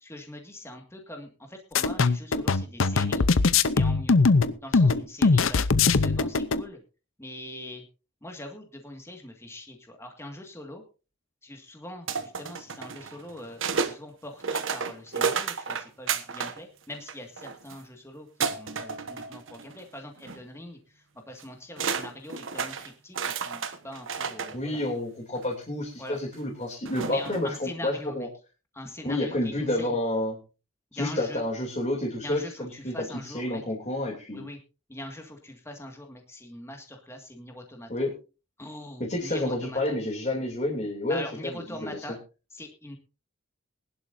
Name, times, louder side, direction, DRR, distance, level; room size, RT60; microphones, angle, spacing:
voice 1, 0.0-3.2 3.7-4.2 4.6-6.8 7.2-7.8 8.2-10.8 11.4-24.8 26.0-26.2 27.0-28.3 28.7-30.0 30.9-31.4 32.2-33.6 34.3-34.6 34.9-37.9 38.6-39.9 41.1-42.2 42.5-43.0, left 1 dB, 15° left, 3 dB, 1.9 m, -42 dB
sound 1, 1.8-6.6, left 4 dB, 65° left, 0.7 m, -21 dB
sound 2, 12.1-14.0 14.4-16.6 16.9-17.8 18.4-19.8 20.2-20.4 21.4-21.5 21.8-24.6 25.4-25.5 26.9-27.6, right 5 dB, 65° right, 1.3 m, -31 dB
voice 2, 24.5-28.3 29.0-30.4 30.9-32.9 33.2-34.5 37.9-38.1 39.0-42.0, left 1 dB, 35° left, -2 dB, 3.0 m, -29 dB
21.5 x 11.5 x 2.7 m, 0.32 s
head